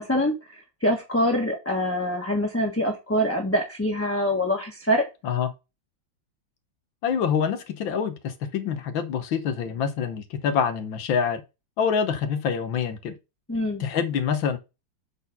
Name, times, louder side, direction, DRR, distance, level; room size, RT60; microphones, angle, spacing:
voice 1, 0.0-5.0 13.5-13.8, equal, 10° left, 1.3 m, -25 dB
voice 2, 7.0-11.4 11.8-13.2 13.8-14.6, left 7 dB, 85° left, 1.8 m, -26 dB
7.5 x 4.2 x 5.4 m
omnidirectional pair, 2.1 m